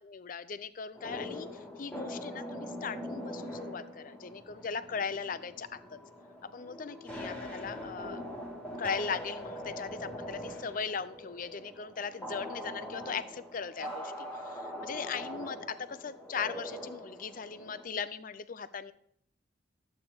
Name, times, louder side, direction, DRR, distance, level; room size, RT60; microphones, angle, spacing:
voice 1, 0.0-6.0 6.4-8.2 8.8-18.9, left 6 dB, 45° left, 13 dB, 0.5 m, -38 dB
sound 1, 0.9-17.9, equal, 10° left, 1.3 m, -42 dB
11.5 x 8.2 x 3.5 m, 0.68 s
head